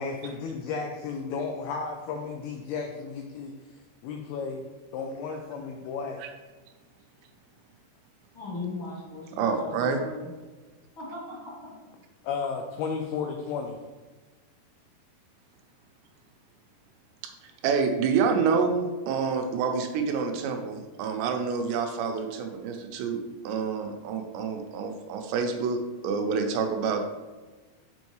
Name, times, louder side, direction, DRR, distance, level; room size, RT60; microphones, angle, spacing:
voice 1, 0.0-3.5 4.0-4.6 4.9-6.2 12.2-13.8, left 5 dB, 85° left, 3 dB, 2.2 m, -33 dB
voice 2, 8.3-10.3 11.0-11.5, left 2 dB, 55° left, -10 dB, 1.4 m, -38 dB
voice 3, 9.3-10.0 17.2-17.3 17.6-27.0, right 5 dB, 90° right, 5 dB, 2.9 m, -27 dB
7.1 x 5.3 x 3.1 m, 1.3 s
omnidirectional pair, 5.1 m